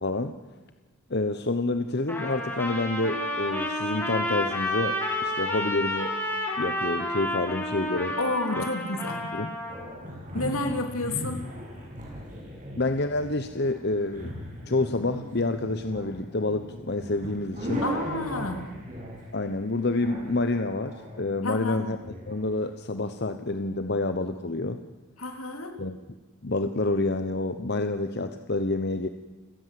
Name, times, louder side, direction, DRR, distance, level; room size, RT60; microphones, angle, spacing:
voice 1, 0.0-0.3 1.1-6.1 6.6-8.2 8.6-8.7 9.3-9.5 12.8-14.3 14.7-17.8 19.3-22.0 22.3-24.8 25.8-26.0 26.4-29.1, left 2 dB, 45° left, 9 dB, 1.0 m, -28 dB
Trumpet, 2.1-9.9, left 1 dB, 10° left, 5.1 m, -30 dB
voice 2, 8.2-9.2 10.3-11.4 17.8-18.6 21.4-21.8 25.2-25.8, left 2 dB, 75° left, 5 dB, 3.3 m, -30 dB
sound 1, 9.7-22.4, equal, 35° right, 7.0 m, -38 dB
29.5 x 18.0 x 7.7 m, 1.3 s
head